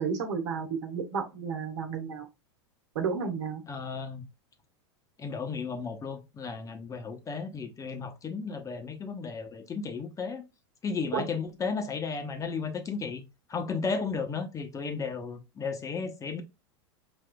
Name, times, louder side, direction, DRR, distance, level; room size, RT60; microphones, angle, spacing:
voice 1, 0.0-2.3 2.9-3.6 11.1-11.2, right 6 dB, 75° right, 1.2 m, -32 dB
voice 2, 3.7-4.2 5.2-10.4 10.8-16.4, left 5 dB, 20° left, 0.9 m, -34 dB
5.2 x 2.6 x 2.2 m
hypercardioid pair, 110°, 15 cm